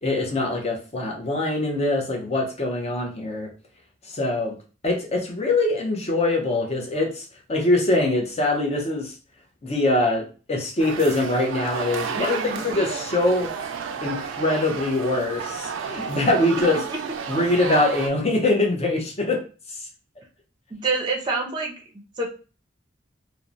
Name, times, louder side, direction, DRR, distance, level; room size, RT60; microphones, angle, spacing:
voice 1, 0.0-3.5 4.1-4.6 4.8-9.2 9.6-12.4 12.6-13.5 14.0-16.8 17.3-19.4 19.7-19.9, left 2 dB, 35° left, 1 dB, 0.6 m, -23 dB
sound 1, 10.8-18.1, right 6 dB, 85° right, 0.4 m, -32 dB
voice 2, 12.1-12.6 16.0-16.1 16.9-17.0 20.7-21.7 22.2-22.3, right 3 dB, 25° right, 0 dB, 0.5 m, -27 dB
2.9 x 2.0 x 2.5 m, 0.35 s
head